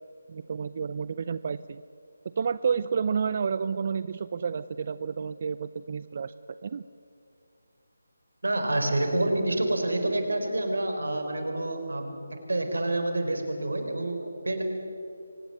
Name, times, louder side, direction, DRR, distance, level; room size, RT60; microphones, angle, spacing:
voice 1, 0.3-1.8 2.3-6.3 6.6-6.8, right 6 dB, 40° right, 15 dB, 0.5 m, -30 dB
voice 2, 8.4-14.6, right 1 dB, 85° right, 5 dB, 4.5 m, -28 dB
24.5 x 19.5 x 8.0 m, 2.6 s
figure-of-eight pair, 160°, 0 cm